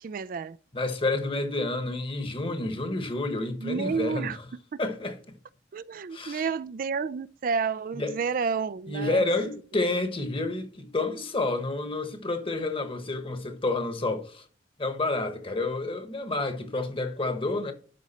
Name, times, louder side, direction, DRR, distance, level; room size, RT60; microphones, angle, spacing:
voice 1, 0.0-0.6 3.6-4.4 4.7-4.8 5.7-9.2, right 5 dB, 50° right, 0.3 m, -30 dB
voice 2, 0.7-4.5 4.8-5.4 6.1-6.5 7.9-8.2 8.9-14.4 14.8-17.7, left 2 dB, 30° left, 1.3 m, -29 dB
12.0 x 5.2 x 4.2 m
head